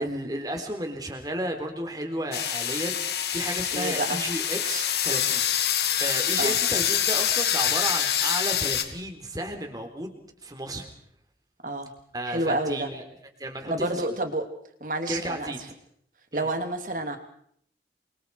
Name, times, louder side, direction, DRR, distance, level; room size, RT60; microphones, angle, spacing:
voice 1, 0.0-10.1 10.4-10.9 12.1-13.0 13.4-14.1 15.1-15.6 16.3-16.5, right 1 dB, 20° right, 5 dB, 3.6 m, -33 dB
sound 1, 2.3-8.8, left 9 dB, 70° left, 2.2 m, -26 dB
voice 2, 3.7-4.2 6.4-6.5 11.6-11.9 12.3-12.9 13.7-14.5 14.8-15.5 16.3-17.2, right 2 dB, 50° right, 6 dB, 2.9 m, -29 dB
28.5 x 24.0 x 4.8 m, 0.67 s
head